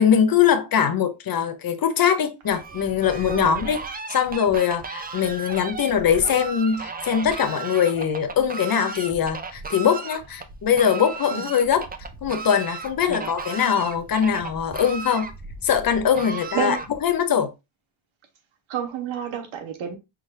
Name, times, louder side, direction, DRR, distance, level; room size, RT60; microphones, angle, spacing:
voice 1, 0.0-3.8 4.1-11.9 12.2-15.3 15.6-17.5, left 8 dB, 50° left, 0.7 m, -22 dB
Fowl, 2.4-17.2, right 3 dB, 20° right, 0.5 m, -36 dB
voice 2, 18.7-19.9, right 7 dB, 80° right, 1.3 m, -29 dB
5.7 x 2.4 x 3.3 m
cardioid pair, 110°, 47 cm